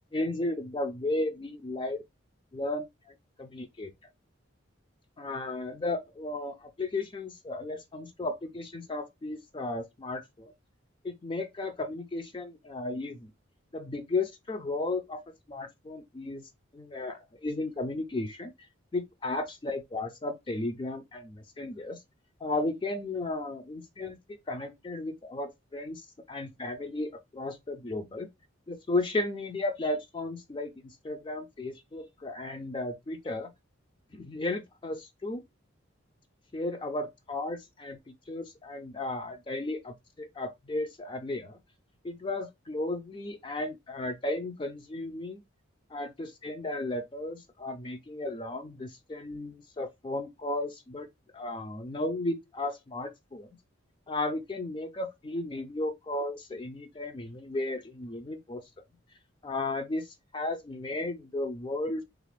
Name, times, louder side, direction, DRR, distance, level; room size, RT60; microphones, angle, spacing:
voice 1, 0.1-2.0 2.5-3.9 5.2-10.5 11.0-13.3 13.7-15.2 15.5-18.5 18.9-22.0 22.4-26.0 26.3-28.3 28.7-33.5 34.1-35.4 36.5-41.6 42.0-45.4 45.9-51.1 51.3-53.5 54.1-58.6 59.4-62.0, left 2 dB, 25° left, 0.3 m, -34 dB
3.3 x 2.4 x 3.2 m
head